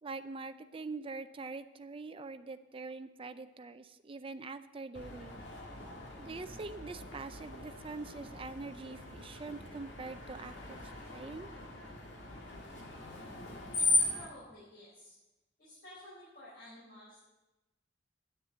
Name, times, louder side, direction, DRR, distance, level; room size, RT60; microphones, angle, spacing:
voice 1, 0.0-5.5 6.2-11.5, right 3 dB, 30° right, 11 dB, 0.5 m, -44 dB
Screech, 4.9-14.3, left 2 dB, 75° left, 2.1 m, -38 dB
voice 2, 13.9-15.2 15.6-17.3, left 1 dB, 60° left, -8 dB, 4.2 m, -53 dB
9.5 x 6.7 x 7.4 m, 1.0 s
head